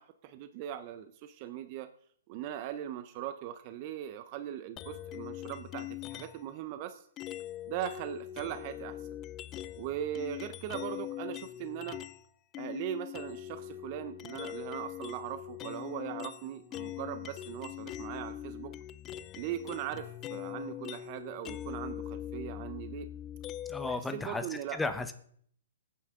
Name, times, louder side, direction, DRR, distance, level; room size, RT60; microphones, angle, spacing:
voice 1, 0.0-1.9 2.3-7.1 7.7-9.1 9.8-12.0 12.6-18.7 19.4-23.1 23.8-24.8, right 11 dB, 40° right, 10 dB, 0.7 m, -40 dB
sound 1, 4.8-6.5 7.2-12.2 12.5-24.0, left 12 dB, 25° left, 0.4 m, -42 dB
voice 2, 23.7-25.1, left 3 dB, 5° left, 9 dB, 1.0 m, -35 dB
25.0 x 9.4 x 3.8 m, 0.64 s
hypercardioid pair, 150°, 0 cm